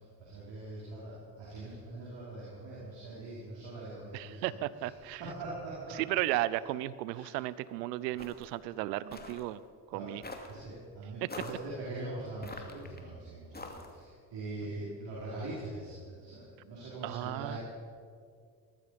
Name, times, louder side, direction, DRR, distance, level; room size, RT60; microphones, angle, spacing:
voice 1, 0.2-4.5 5.2-6.0 7.1-7.3 9.0-9.4 9.9-10.2 10.5-17.6, right 2 dB, 60° right, -6 dB, 5.4 m, -42 dB
voice 2, 4.1-5.2 5.9-9.6 9.9-10.2 11.2-11.3 14.6-14.9 17.0-17.6, right 16 dB, 90° right, 18 dB, 0.6 m, -35 dB
sound 1, 8.2-8.5 9.1-9.4 10.2-10.6 11.3-11.6 12.4-13.0 13.5-14.0, left 2 dB, 20° left, 2.6 m, -44 dB
19.0 x 14.0 x 5.2 m, 2.1 s
hypercardioid pair, 55°, 48 cm